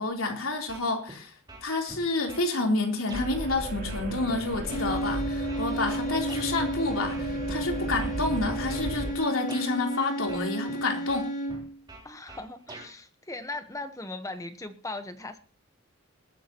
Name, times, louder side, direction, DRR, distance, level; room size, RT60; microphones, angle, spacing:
voice 1, 0.0-1.3 1.6-11.3, left 2 dB, 90° left, 2 dB, 3.7 m, -29 dB
sound 1, 0.7-1.2 1.5-2.5 3.1-3.3 3.9-6.5 7.1-7.5 7.9-8.9 9.5-9.7 10.3-10.8 11.1-12.9, right 2 dB, 20° right, 3.6 m, -45 dB
sound 2, 3.1-9.1, right 1 dB, 50° right, 3.6 m, -35 dB
sound 3, 4.6-11.8, right 1 dB, 40° left, 4.3 m, -33 dB
voice 2, 12.0-15.4, left 2 dB, 15° left, 9 dB, 1.1 m, -38 dB
21.0 x 13.0 x 3.0 m, 0.35 s
head